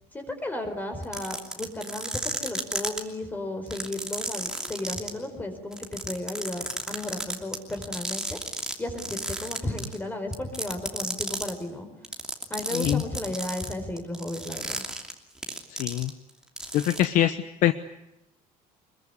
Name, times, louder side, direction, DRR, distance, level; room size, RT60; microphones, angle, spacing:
voice 1, 0.1-8.4 8.8-11.9 12.5-14.8, left 1 dB, 10° left, 6 dB, 4.5 m, -34 dB
sound 1, 1.0-3.0 3.7-5.1 5.7-8.7 9.0-10.0 10.3-11.5 12.0-16.3 16.6-17.0, right 1 dB, 5° right, 2.8 m, -32 dB
voice 2, 12.7-13.0 15.8-16.1 16.7-17.7, left 12 dB, 60° left, 11 dB, 1.1 m, -23 dB
26.0 x 22.5 x 9.8 m, 0.86 s
cardioid pair, 160°, 15 cm